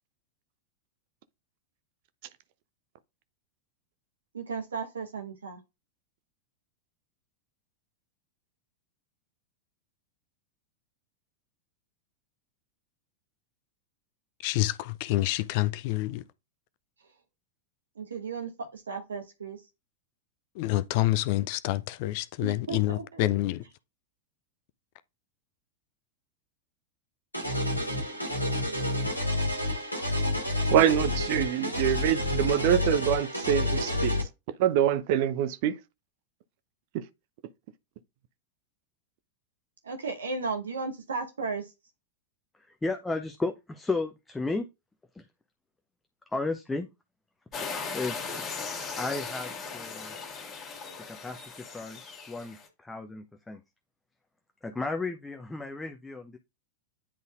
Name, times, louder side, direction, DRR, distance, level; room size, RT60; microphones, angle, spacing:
voice 1, 4.3-5.6 17.9-19.6 22.4-23.3 39.8-41.7, right 4 dB, 70° right, 1.2 m, -35 dB
voice 2, 14.4-16.2 20.6-23.6, left 16 dB, 45° left, 0.4 m, -27 dB
sound 1, 27.3-34.2, left 1 dB, 90° left, 1.4 m, -29 dB
voice 3, 30.7-34.1 34.6-35.8 36.9-37.1, right 10 dB, 50° right, 0.5 m, -25 dB
voice 4, 42.7-44.7 45.1-45.3 46.3-46.9 47.6-48.5 48.9-50.1 51.1-52.0 52.3-53.6 54.6-56.4, left 3 dB, 10° left, 0.7 m, -34 dB
sound 2, 47.5-52.7, left 5 dB, 25° left, 1.9 m, -38 dB
9.8 x 4.0 x 2.4 m
figure-of-eight pair, 90°, 0 cm